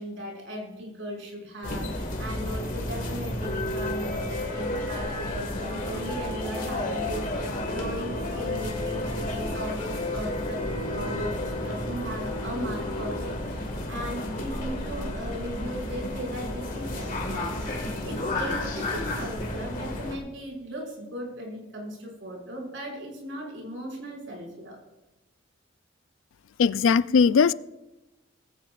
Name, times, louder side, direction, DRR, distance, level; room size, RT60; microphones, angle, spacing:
voice 1, 0.0-17.8 18.0-24.8, equal, 65° right, 6.0 m, -37 dB
sound 1, 1.6-20.2, left 1 dB, 40° left, 2.0 m, -31 dB
voice 2, 26.6-27.5, left 5 dB, 75° left, 0.4 m, -19 dB
19.0 x 16.5 x 2.5 m
head